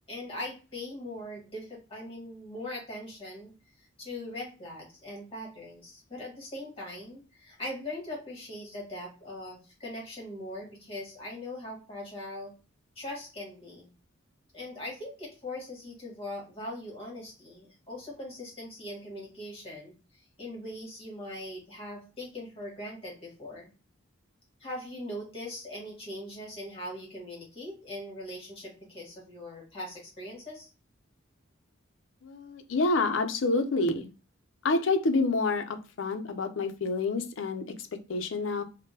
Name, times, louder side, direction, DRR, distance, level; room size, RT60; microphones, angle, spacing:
voice 1, 0.1-3.5 4.0-12.5 12.9-13.9 14.5-19.9 20.4-23.7 24.6-30.7, left 1 dB, 30° left, -2 dB, 1.4 m, -41 dB
voice 2, 32.2-34.1 34.6-38.6, left 3 dB, 65° left, 8 dB, 0.5 m, -28 dB
3.5 x 2.1 x 2.8 m, 0.33 s
head